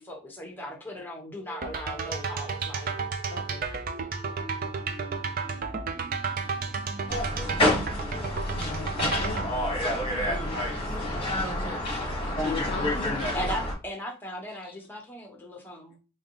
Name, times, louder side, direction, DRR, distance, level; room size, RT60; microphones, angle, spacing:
voice 1, 0.0-2.9 10.2-11.1 13.3-16.0, equal, 10° left, 1 dB, 0.9 m, -38 dB
sound 1, 0.6-9.5, right 2 dB, 25° right, 1.1 m, -48 dB
sound 2, 1.6-9.5, right 4 dB, 45° right, 0.5 m, -32 dB
voice 2, 3.3-3.7 6.6-6.8 7.3-7.5 8.5-9.5 12.4-13.2 14.6-14.8, left 5 dB, 50° left, 6 dB, 0.4 m, -39 dB
sound 3, 7.1-13.7, left 1 dB, 25° left, 1.2 m, -28 dB
voice 3, 10.1-13.4, right 2 dB, 60° right, 1 dB, 1.3 m, -46 dB
3.5 x 2.4 x 3.7 m, 0.32 s
head